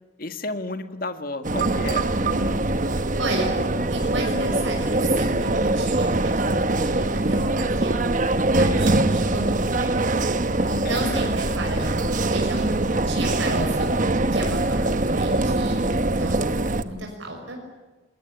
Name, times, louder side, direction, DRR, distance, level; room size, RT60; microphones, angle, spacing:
voice 1, 0.2-2.1 10.8-11.3, left 2 dB, 45° left, 8 dB, 1.9 m, -32 dB
sound 1, 1.4-16.8, right 2 dB, 40° right, 1.1 m, -23 dB
voice 2, 2.1-2.5 3.2-3.5 3.9-6.4 6.7-7.9 8.6-9.9 10.6-12.7 13.1-13.9 14.3-17.6, right 1 dB, 80° right, 1 dB, 5.8 m, -32 dB
27.5 x 21.0 x 10.0 m, 1.2 s
head